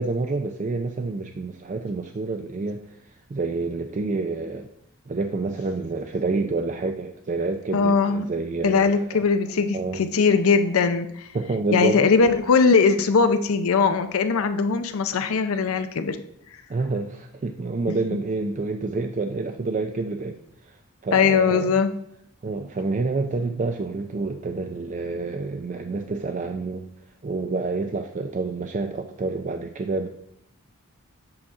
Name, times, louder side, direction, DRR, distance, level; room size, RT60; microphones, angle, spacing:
voice 1, 0.0-3.0 3.3-4.7 5.1-9.3 9.7-10.0 11.3-12.0 16.7-20.4 20.6-21.8 22.4-26.9 27.2-30.1, right 3 dB, 35° right, 6 dB, 0.4 m, -28 dB
voice 2, 7.7-8.2 8.6-11.3 11.7-16.2 21.1-21.9, left 5 dB, 80° left, 9 dB, 0.5 m, -20 dB
7.8 x 5.6 x 3.6 m, 0.73 s
head